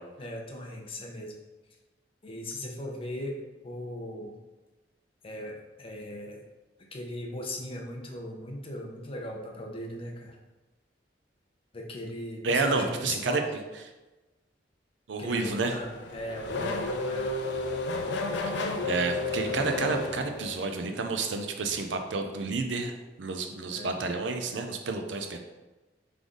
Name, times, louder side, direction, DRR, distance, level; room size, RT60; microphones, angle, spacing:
voice 1, 0.2-1.3 2.2-3.4 3.6-4.4 5.2-6.4 6.9-10.4 11.7-13.5 15.2-17.3 23.7-24.0, left 1 dB, 30° left, 1 dB, 0.6 m, -38 dB
voice 2, 12.4-13.4 15.1-15.7 18.4-22.9 23.2-25.4, right 3 dB, 80° right, 5 dB, 0.5 m, -30 dB
Race car auto racing / Accelerating revving vroom, 15.3-20.9, left 2 dB, 70° left, 0.5 m, -32 dB
3.8 x 3.3 x 3.7 m, 1.1 s
head